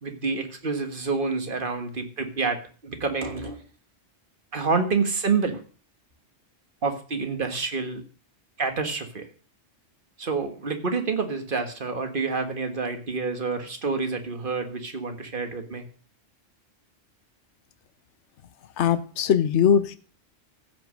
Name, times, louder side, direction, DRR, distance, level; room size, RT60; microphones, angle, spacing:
voice 1, 0.0-3.6 4.5-5.6 6.8-8.0 8.6-9.3 10.2-15.9, right 4 dB, 45° right, 6 dB, 1.7 m, -28 dB
voice 2, 18.8-20.0, left 8 dB, 70° left, 13 dB, 1.1 m, -21 dB
15.0 x 6.0 x 6.4 m, 0.40 s
omnidirectional pair, 1.2 m